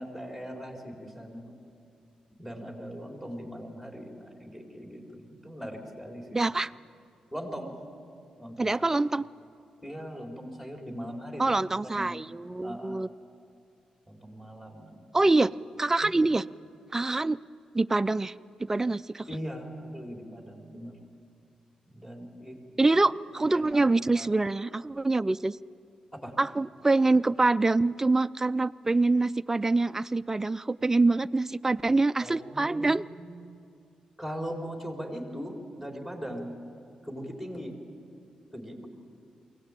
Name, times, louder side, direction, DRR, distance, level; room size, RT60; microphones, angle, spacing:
voice 1, 0.0-1.6 2.4-6.4 7.3-7.7 8.4-9.0 9.8-11.5 11.8-12.2 12.6-13.0 14.1-15.2 16.0-16.2 19.3-20.9 21.9-22.9 23.5-23.8 24.1-24.3 26.1-26.3 32.2-33.4 34.2-36.6 37.0-37.7 38.5-38.9, equal, 10° left, 0 dB, 4.2 m, -40 dB
voice 2, 6.3-6.7 8.6-9.2 11.4-13.1 15.1-15.5 15.8-16.4 16.9-17.4 17.7-18.3 18.6-19.3 22.8-25.6 26.4-33.1, right 2 dB, 20° right, 13 dB, 0.4 m, -25 dB
22.5 x 17.0 x 9.1 m, 2.5 s
cardioid pair, 70°, 2 cm